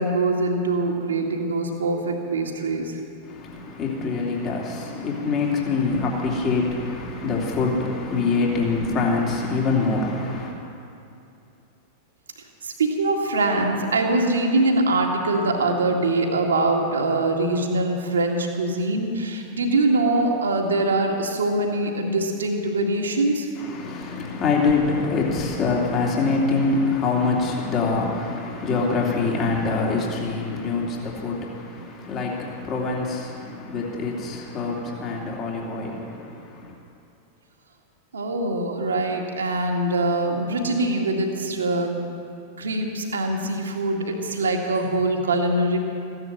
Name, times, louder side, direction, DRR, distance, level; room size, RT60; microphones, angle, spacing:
voice 1, 0.0-3.0 12.6-23.5 38.1-41.9 42.6-45.8, right 2 dB, 70° right, 2 dB, 2.0 m, -23 dB
voice 2, 3.2-10.5 23.6-36.7, left 4 dB, 30° left, -2 dB, 3.0 m, -25 dB
15.5 x 11.0 x 7.5 m, 2.7 s
figure-of-eight pair, 90°, 0 cm